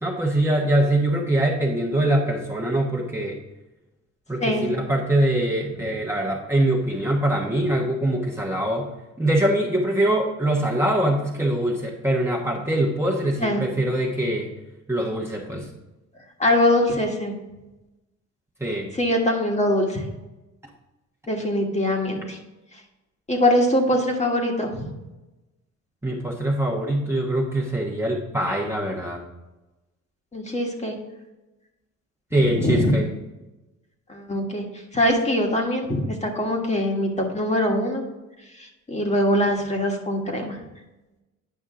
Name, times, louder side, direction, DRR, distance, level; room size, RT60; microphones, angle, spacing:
voice 1, 0.0-3.4 4.3-8.9 9.2-14.5 14.9-15.7 18.6-18.9 26.0-29.2 32.3-33.1, right 1 dB, 10° right, -2 dB, 1.2 m, -23 dB
voice 2, 16.4-17.3 18.9-20.0 21.3-22.4 23.3-24.9 30.3-31.0 32.5-32.9 34.1-34.6 34.9-38.0 38.6-40.6, left 1 dB, 20° left, 1 dB, 1.6 m, -22 dB
9.4 x 5.4 x 3.8 m, 1.0 s
cardioid pair, 90°, 30 cm